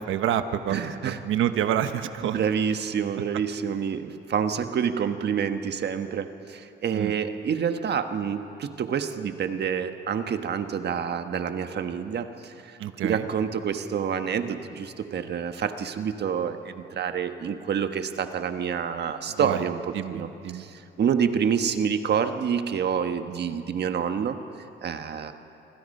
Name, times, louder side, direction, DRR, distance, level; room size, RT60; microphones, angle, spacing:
voice 1, 0.0-2.4 6.9-7.1 12.8-13.2 19.4-19.6 19.9-20.6, right 10 dB, 80° right, 9 dB, 1.1 m, -28 dB
voice 2, 0.7-1.2 2.2-24.4 24.8-25.3, right 7 dB, 55° right, 8 dB, 1.4 m, -28 dB
27.0 x 24.5 x 5.5 m, 2.7 s
cardioid pair, 90°, 20 cm